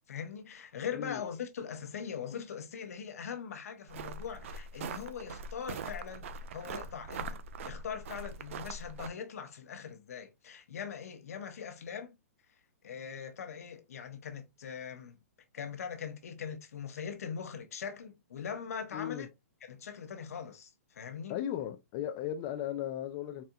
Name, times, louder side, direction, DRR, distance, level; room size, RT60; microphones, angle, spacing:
voice 1, 0.1-7.4 7.6-12.1 12.8-15.2 15.5-19.3 19.6-21.3, left 7 dB, 70° left, 0.9 m, -41 dB
sound 1, 3.9-9.1, right 4 dB, 55° right, 0.5 m, -42 dB
voice 2, 18.9-19.3 21.3-23.4, left 11 dB, 30° left, 0.4 m, -36 dB
4.1 x 2.6 x 2.2 m
hypercardioid pair, 155°, 8 cm